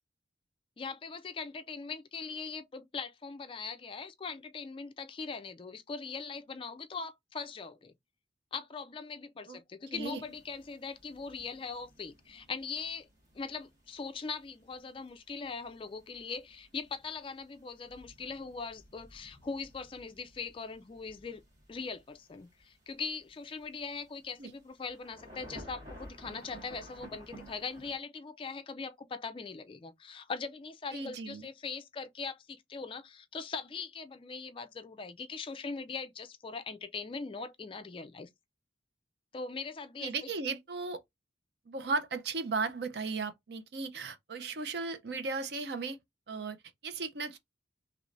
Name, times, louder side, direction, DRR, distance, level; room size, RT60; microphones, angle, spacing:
voice 1, 0.8-7.9 8.5-13.1 13.3-21.4 21.7-38.3 39.3-40.1, left 4 dB, 30° left, 0.3 m, -41 dB
sound 1, 9.9-28.0, equal, 40° right, 1.7 m, -55 dB
voice 2, 30.9-31.5 40.0-41.0 41.7-46.0 46.3-46.6 46.8-47.4, right 4 dB, 60° right, 0.6 m, -36 dB
3.2 x 3.0 x 2.5 m
head